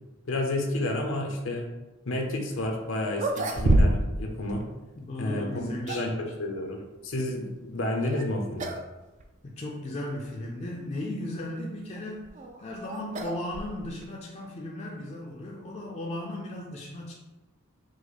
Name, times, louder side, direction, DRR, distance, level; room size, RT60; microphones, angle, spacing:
voice 1, 0.3-1.7 2.1-4.6 5.2-8.7, left 1 dB, 70° left, 2 dB, 0.6 m, -30 dB
sound 1, 2.6-2.7 3.1-4.2 4.5-4.6 5.5-6.2 8.0-8.3 8.6-8.9 9.2-9.3 10.1-10.2 12.0-14.1, right 1 dB, 35° right, 0.4 m, -27 dB
voice 2, 5.0-6.3 9.4-12.3 12.6-17.1, left 1 dB, 35° left, -2 dB, 0.4 m, -36 dB
4.8 x 2.0 x 4.0 m, 1.1 s
head